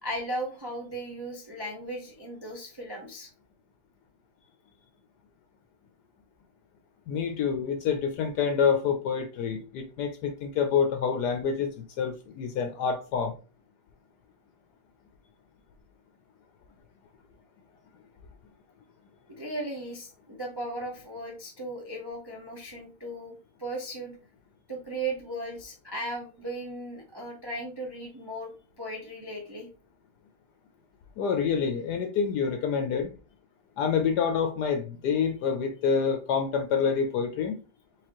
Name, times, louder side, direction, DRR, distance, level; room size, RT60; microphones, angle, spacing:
voice 1, 0.0-3.3 19.4-24.2 24.7-29.7, right 1 dB, 35° right, 0 dB, 0.4 m, -37 dB
voice 2, 7.1-13.3 31.2-33.1 33.8-37.6, left 6 dB, 70° left, 6 dB, 1.1 m, -27 dB
4.8 x 3.6 x 2.9 m, 0.36 s
omnidirectional pair, 2.0 m